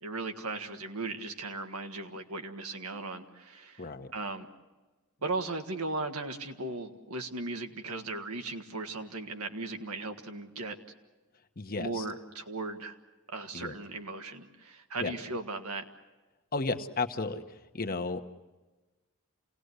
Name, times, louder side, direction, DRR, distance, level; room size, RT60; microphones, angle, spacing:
voice 1, 0.0-4.5 5.2-10.8 11.8-13.0 13.3-15.8, right 3 dB, 90° right, 5 dB, 1.8 m, -37 dB
voice 2, 3.8-4.1 11.6-12.1 13.5-13.7 15.0-15.1 16.5-18.2, left 3 dB, 45° left, 6 dB, 1.1 m, -33 dB
27.5 x 18.0 x 8.1 m, 1.2 s
head